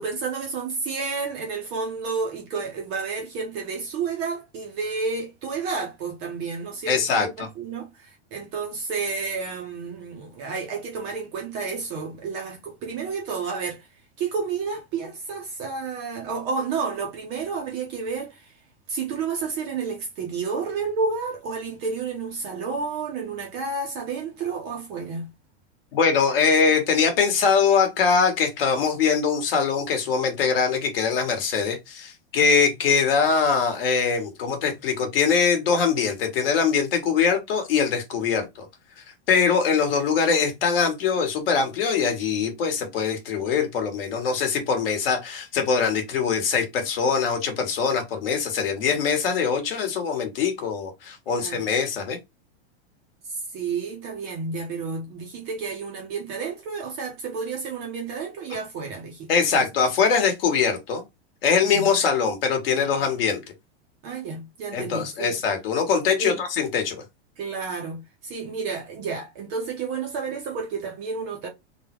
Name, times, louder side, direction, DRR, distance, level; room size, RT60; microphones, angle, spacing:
voice 1, 0.0-13.9 14.2-18.5 18.9-25.3 51.3-51.6 53.3-59.6 61.6-61.9 63.0-63.1 64.0-65.3 66.2-66.4 67.4-71.5, right 5 dB, 20° right, 0.4 m, -31 dB
voice 2, 6.9-7.5 25.9-38.7 39.3-52.2 59.3-61.0 61.4-63.4 64.7-67.0, left 6 dB, 60° left, 1.4 m, -22 dB
3.5 x 2.1 x 4.3 m
supercardioid pair, 170°, 33 cm